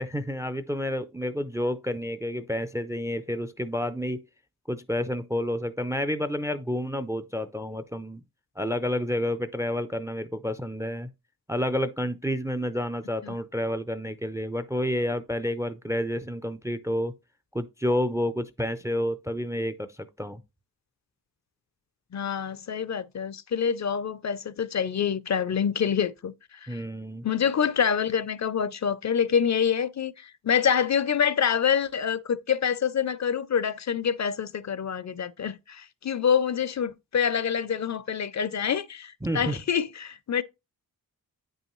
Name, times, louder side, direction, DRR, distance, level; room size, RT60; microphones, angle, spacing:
voice 1, 0.0-4.2 4.7-8.2 8.6-11.1 11.5-17.1 17.5-19.9 20.2-20.4 26.7-27.3 39.2-39.6, equal, 10° right, 0.3 m, -29 dB
voice 2, 22.1-26.3 26.6-26.8 27.2-40.4, left 7 dB, 50° left, 0.5 m, -26 dB
9.3 x 5.5 x 3.0 m
wide cardioid pair, 160°, 36 cm